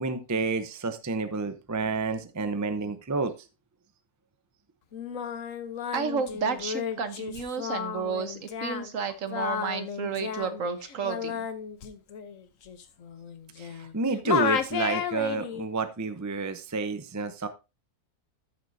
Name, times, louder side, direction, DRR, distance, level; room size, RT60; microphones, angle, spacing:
voice 1, 0.0-3.3 13.6-17.5, right 3 dB, 20° right, 10 dB, 0.5 m, -30 dB
Singing, 4.9-13.9 14.2-15.7, left 8 dB, 65° left, 1.2 m, -33 dB
voice 2, 5.9-11.5, right 5 dB, 60° right, 9 dB, 1.4 m, -32 dB
14.0 x 6.7 x 2.7 m, 0.27 s
omnidirectional pair, 1.6 m